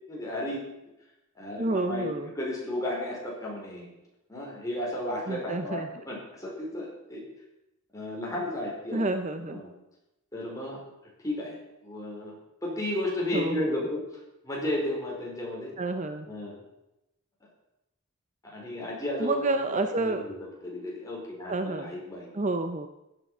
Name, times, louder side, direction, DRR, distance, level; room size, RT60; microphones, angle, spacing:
voice 1, 0.1-0.6 1.3-2.1 2.3-3.9 4.3-7.2 7.9-9.1 9.4-9.7 10.3-10.8 11.2-12.3 12.6-14.0 14.4-15.7 16.3-16.6 18.4-20.3 20.6-22.3, left 1 dB, 15° left, -3 dB, 4.8 m, -33 dB
voice 2, 1.6-2.3 5.3-5.9 8.9-9.6 13.3-13.8 15.8-16.3 19.2-20.2 21.5-21.9 22.3-22.9, right 2 dB, 35° right, 8 dB, 0.7 m, -29 dB
15.5 x 9.9 x 5.6 m, 0.92 s
head